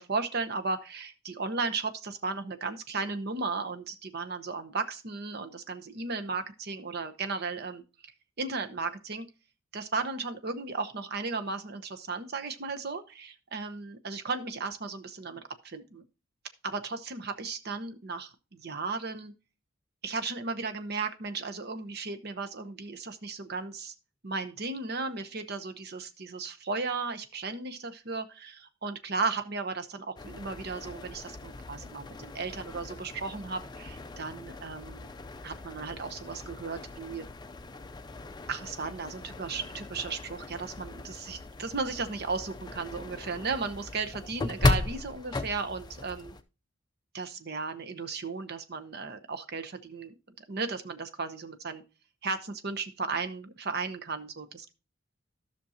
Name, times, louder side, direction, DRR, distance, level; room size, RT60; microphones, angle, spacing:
voice 1, 0.0-7.8 8.4-9.3 9.7-16.0 16.6-19.3 20.0-23.9 24.2-35.1 35.4-37.2 38.5-46.3 47.1-50.1 50.5-51.8 52.2-54.7, right 4 dB, 50° right, 8 dB, 0.9 m, -35 dB
sound 1, 30.2-46.4, left 2 dB, 20° left, 0.5 m, -36 dB
13.0 x 6.2 x 2.8 m, 0.30 s
head